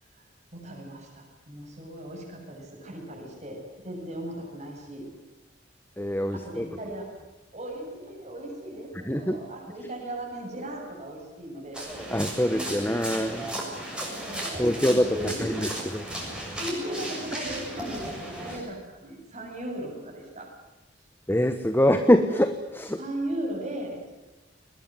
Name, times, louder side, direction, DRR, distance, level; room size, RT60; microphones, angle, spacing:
voice 1, 0.2-5.1 6.3-7.1 7.5-11.8 14.1-14.7 15.1-15.6 16.5-20.5 23.0-24.0, right 1 dB, 40° right, 0 dB, 7.9 m, -37 dB
voice 2, 6.0-6.7 9.0-9.4 12.1-13.5 14.6-16.0 16.3-16.6 21.3-23.0, equal, 10° left, 9 dB, 1.2 m, -24 dB
sound 1, 11.7-18.6, right 1 dB, 5° right, 7.3 m, -35 dB
21.0 x 21.0 x 9.6 m, 1.1 s
head